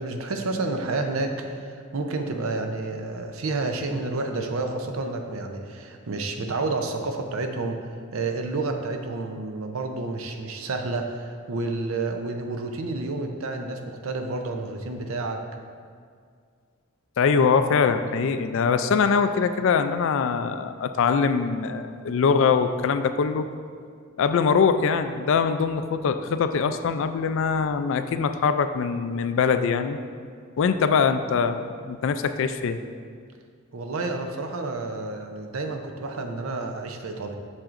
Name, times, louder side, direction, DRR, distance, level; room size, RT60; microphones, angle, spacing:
voice 1, 0.0-7.8 8.1-15.4 33.7-37.4, right 3 dB, 75° right, 5 dB, 0.6 m, -30 dB
voice 2, 17.2-23.5 24.2-30.0 30.6-32.8, left 5 dB, 65° left, 10 dB, 0.3 m, -23 dB
7.4 x 6.2 x 2.5 m, 2.1 s
head